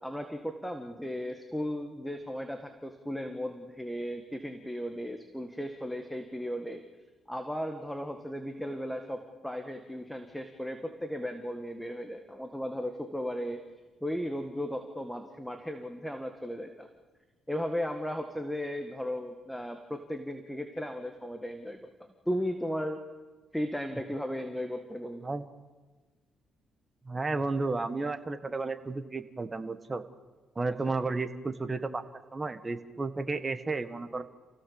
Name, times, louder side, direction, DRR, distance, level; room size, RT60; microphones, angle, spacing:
voice 1, 0.0-6.8 7.3-13.6 14.0-16.9 17.5-21.9 22.3-23.0 23.5-25.2, equal, 5° left, 6 dB, 1.9 m, -36 dB
voice 2, 27.0-30.0 30.5-32.0 32.3-34.2, right 3 dB, 25° right, 10 dB, 1.6 m, -32 dB
28.5 x 16.5 x 7.2 m, 1.3 s
cardioid pair, 90°, 0 cm